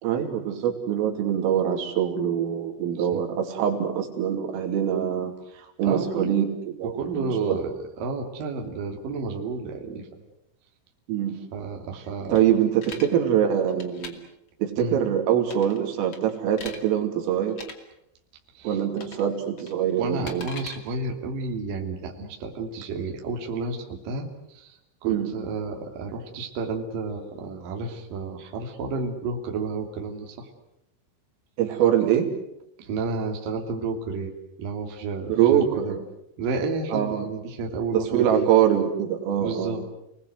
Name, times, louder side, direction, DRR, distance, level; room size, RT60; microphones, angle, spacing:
voice 1, 0.0-5.3 5.8-6.5 6.8-7.6 11.1-11.4 12.3-14.2 14.6-17.6 18.7-20.5 25.0-25.3 31.6-32.3 35.3-36.0 36.9-37.3 37.9-39.8, right 9 dB, 80° right, 3 dB, 5.4 m, -24 dB
voice 2, 5.8-6.4 6.8-10.1 11.5-12.4 14.8-15.0 18.5-18.8 20.0-30.5 32.8-34.3 34.6-36.0 36.4-38.5 39.4-39.9, right 4 dB, 50° right, 2 dB, 4.0 m, -31 dB
sound 1, 12.4-13.1 13.7-14.1 15.4-15.8 16.1-16.8 17.5-17.7 19.0-19.3 19.6-20.8, left 4 dB, 40° left, 2.0 m, -40 dB
30.0 x 20.0 x 8.0 m, 0.82 s
omnidirectional pair, 5.8 m